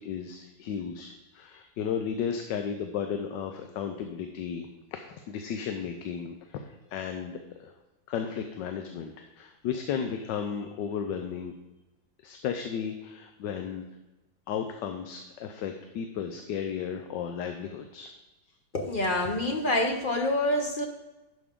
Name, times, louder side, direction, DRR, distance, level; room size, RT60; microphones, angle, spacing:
voice 1, 0.0-7.7 8.1-11.5 12.2-13.8 14.5-18.1, left 7 dB, 80° left, 5 dB, 1.3 m, -34 dB
voice 2, 18.7-20.9, left 1 dB, 40° left, 3 dB, 0.8 m, -27 dB
11.5 x 6.0 x 3.7 m, 1.1 s
omnidirectional pair, 1.9 m